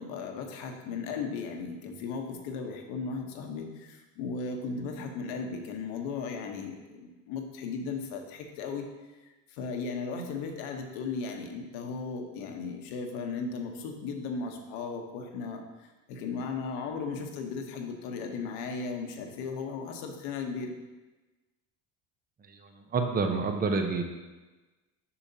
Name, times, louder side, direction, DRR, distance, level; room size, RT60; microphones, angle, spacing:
voice 1, 0.0-8.9 9.2-20.7, left 4 dB, 75° left, 3 dB, 1.1 m, -36 dB
voice 2, 22.5-24.0, right 4 dB, 25° right, 5 dB, 0.7 m, -28 dB
6.9 x 6.3 x 2.8 m, 1.2 s
supercardioid pair, 100°, 38 cm